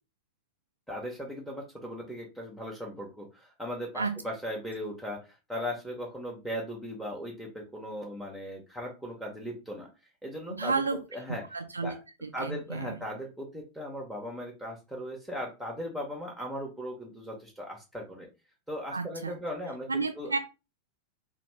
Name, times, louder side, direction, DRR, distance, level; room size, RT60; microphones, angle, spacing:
voice 1, 0.9-9.9 10.2-10.8 11.1-11.4 11.8-12.0 12.3-18.3 18.7-20.3, equal, 5° left, -1 dB, 0.9 m, -38 dB
voice 2, 10.6-11.0 11.5-12.0 12.2-12.9 18.9-19.3 19.9-20.4, right 4 dB, 80° right, 9 dB, 0.3 m, -31 dB
3.0 x 2.2 x 3.1 m, 0.28 s
figure-of-eight pair, 90°, 0 cm